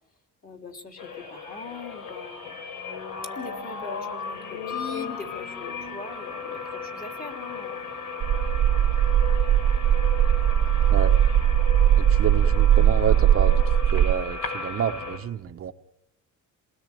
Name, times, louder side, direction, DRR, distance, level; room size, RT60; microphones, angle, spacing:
voice 1, 0.4-2.6 3.3-7.9, left 4 dB, 25° left, 3 dB, 3.3 m, -41 dB
sound 1, 1.0-15.2, left 5 dB, 65° left, 5.1 m, -36 dB
sound 2, 8.2-14.1, right 10 dB, 60° right, 1.2 m, -19 dB
voice 2, 12.0-13.6 13.9-15.7, right 8 dB, 45° right, 6 dB, 1.0 m, -29 dB
28.5 x 20.0 x 9.2 m, 0.85 s
cardioid pair, 170°, 32 cm